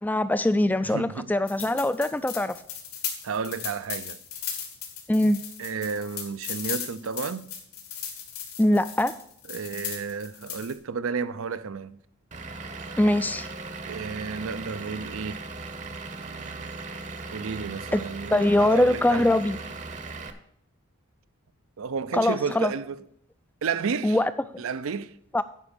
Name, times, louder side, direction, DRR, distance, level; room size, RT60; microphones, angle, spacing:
voice 1, 0.0-2.5 5.1-5.4 8.6-9.1 13.0-13.5 17.9-18.0 18.3-19.6 22.1-22.7 24.0-24.3 25.3-25.4, left 1 dB, 10° left, 0.3 m, -22 dB
voice 2, 0.8-1.3 3.2-4.2 5.6-7.5 9.5-12.0 13.9-15.4 17.3-19.3 21.8-23.1 23.6-24.2 24.6-25.2, right 5 dB, 65° right, 0.5 m, -32 dB
sound 1, 1.5-10.7, left 8 dB, 80° left, 2.3 m, -36 dB
Vehicle / Engine, 12.3-20.3, right 3 dB, 35° right, 0.8 m, -38 dB
9.8 x 5.2 x 6.9 m
head